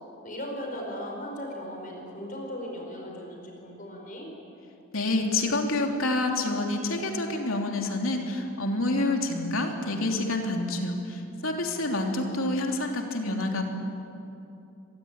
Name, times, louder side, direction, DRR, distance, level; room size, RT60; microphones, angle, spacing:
voice 1, 0.2-4.3, equal, 40° left, 1 dB, 5.0 m, -37 dB
voice 2, 4.9-13.6, left 2 dB, 85° left, 2 dB, 3.3 m, -28 dB
24.5 x 20.5 x 9.0 m, 2.7 s
head